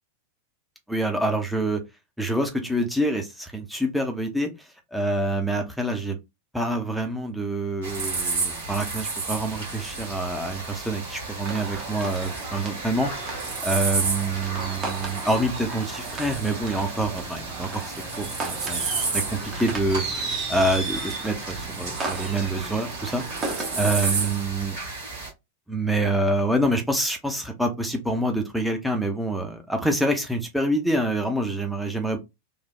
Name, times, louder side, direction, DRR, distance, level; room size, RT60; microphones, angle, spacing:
voice 1, 0.9-1.8 2.2-6.2 6.5-13.4 13.6-18.9 19.1-19.2 19.6-20.0 20.5-23.2 23.8-24.8 25.7-32.2, right 1 dB, ahead, 0.6 m, -26 dB
sound 1, 7.8-25.3, right 3 dB, 60° right, 1.4 m, -32 dB
sound 2, 11.4-24.3, right 3 dB, 25° right, 0.8 m, -35 dB
3.1 x 2.0 x 2.3 m
figure-of-eight pair, 90°, 0 cm